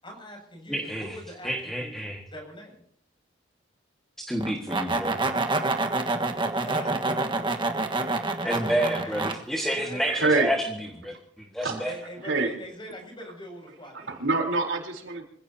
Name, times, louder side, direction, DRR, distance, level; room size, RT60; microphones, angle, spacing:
voice 1, 0.0-1.9 2.3-2.8 6.6-7.5 8.4-9.2 9.7-10.0 11.8-14.1, equal, 25° left, 2 dB, 6.9 m, -43 dB
voice 2, 0.7-1.1 1.4-2.2 4.3-5.2 8.4-10.6 11.0-11.1 11.5-11.9, equal, ahead, 1 dB, 1.8 m, -29 dB
sound 1, 4.4-9.3, right 2 dB, 25° right, 1.5 m, -27 dB
voice 3, 10.0-10.5 11.6-11.8 12.2-12.5 13.9-15.3, right 3 dB, 75° right, 1 dB, 4.0 m, -26 dB
26.0 x 17.0 x 2.9 m, 0.65 s
head